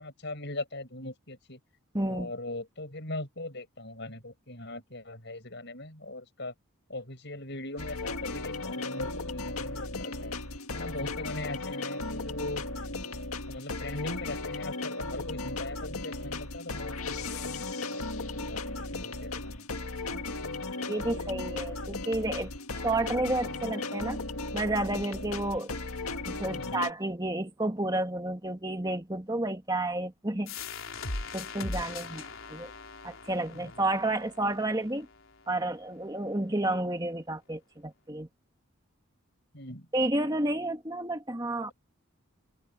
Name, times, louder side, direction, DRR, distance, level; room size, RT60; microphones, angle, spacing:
voice 1, 0.0-1.6 2.1-6.5 6.9-10.3 10.7-12.6 13.5-17.8 18.1-19.7 26.5-26.8 33.5-33.7 39.5-39.9, left 2 dB, 55° left, 7.6 m, -40 dB
voice 2, 1.9-2.3 20.1-20.2 20.8-22.5 22.8-24.2 24.5-25.8 26.3-30.5 31.3-32.7 33.0-35.1 35.5-38.3 39.9-41.7, right 1 dB, 20° right, 1.9 m, -31 dB
sound 1, 7.8-26.9, left 3 dB, 85° left, 2.0 m, -36 dB
sound 2, 30.5-35.9, left 3 dB, 70° left, 3.5 m, -40 dB
head